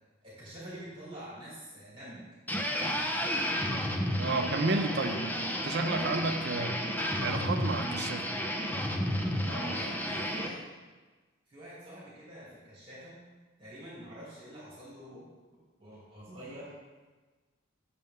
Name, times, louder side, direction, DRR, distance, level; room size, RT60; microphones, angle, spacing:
voice 1, 0.2-2.3 9.4-10.7 11.5-13.2 13.6-15.3 15.8-16.8, equal, 25° right, 2.8 m, -46 dB
sound 1, 2.5-10.5, equal, 10° left, 0.6 m, -32 dB
voice 2, 4.2-5.2 5.6-6.8 7.2-8.3, right 2 dB, 50° right, 0.6 m, -31 dB
9.1 x 6.7 x 3.6 m
head